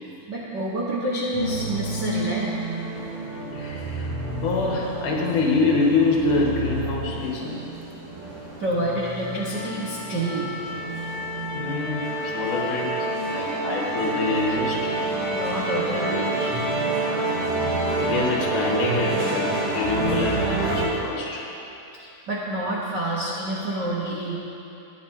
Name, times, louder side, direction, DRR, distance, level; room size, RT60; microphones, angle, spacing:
voice 1, 0.3-2.5 8.6-10.6 13.3-13.7 15.3-16.5 22.0-24.4, right 1 dB, 80° right, -6 dB, 0.9 m, -28 dB
sound 1, 1.3-20.8, right 2 dB, 50° right, 4.0 m, -28 dB
voice 2, 3.6-4.1 4.4-7.6 11.5-13.0 13.3-14.9 17.9-21.4, left 3 dB, 65° left, -3 dB, 2.9 m, -25 dB
21.5 x 9.3 x 2.8 m, 2.9 s
omnidirectional pair, 4.0 m